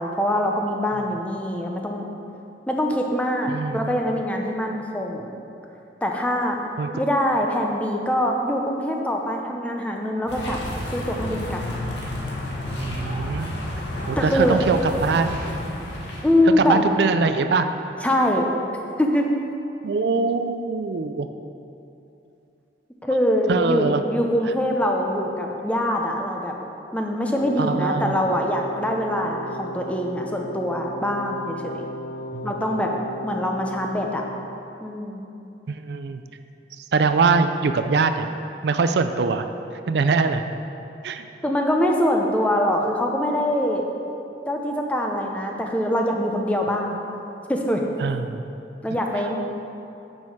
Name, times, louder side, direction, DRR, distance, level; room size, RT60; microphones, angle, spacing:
voice 1, 0.0-2.0 2.7-5.3 6.0-6.6 6.9-10.6 10.9-11.6 14.2-14.6 16.2-17.0 18.0-18.5 19.0-19.3 23.0-26.5 26.9-31.8 32.4-34.2 34.8-35.2 41.4-43.9 44.5-47.0 47.5-47.8 48.8-49.3, left 1 dB, 10° left, 1 dB, 0.7 m, -23 dB
voice 2, 3.5-4.0 6.8-6.9 12.8-13.6 14.1-15.4 16.6-17.7 19.8-21.3 23.5-24.0 27.6-28.2 32.3-32.5 35.7-36.2 36.8-38.3 38.6-39.5 39.9-40.4 41.0-41.3 48.0-48.4, right 4 dB, 65° right, 9 dB, 0.4 m, -23 dB
sound 1, 10.3-16.4, left 1 dB, 70° left, 1.7 m, -31 dB
Wind instrument woodwind instrument, 27.4-34.7, equal, 50° left, 0.4 m, -35 dB
9.5 x 6.3 x 4.8 m, 2.8 s
head